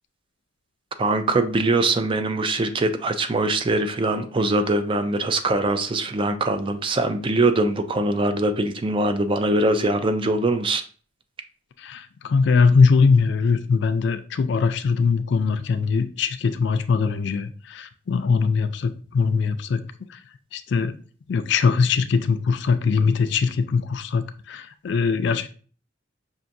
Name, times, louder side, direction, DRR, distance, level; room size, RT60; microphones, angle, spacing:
voice 1, 1.0-10.8, right 2 dB, 25° right, 8 dB, 0.3 m, -22 dB
voice 2, 11.8-19.8 20.1-20.2 20.5-20.9 21.3-25.5, left 5 dB, 60° left, 10 dB, 0.4 m, -21 dB
5.7 x 2.5 x 2.6 m, 0.40 s
head